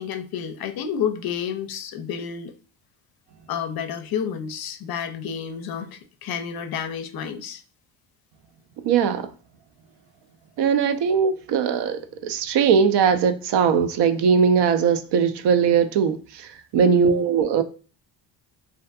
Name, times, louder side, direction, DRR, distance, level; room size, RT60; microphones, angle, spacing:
voice 1, 0.0-2.5 3.5-7.6 16.8-17.2, left 7 dB, 50° left, 0.5 m, -30 dB
voice 2, 8.8-9.3 10.6-17.6, right 6 dB, 60° right, 0.5 m, -20 dB
2.6 x 2.4 x 2.3 m
cardioid pair, 85°, 48 cm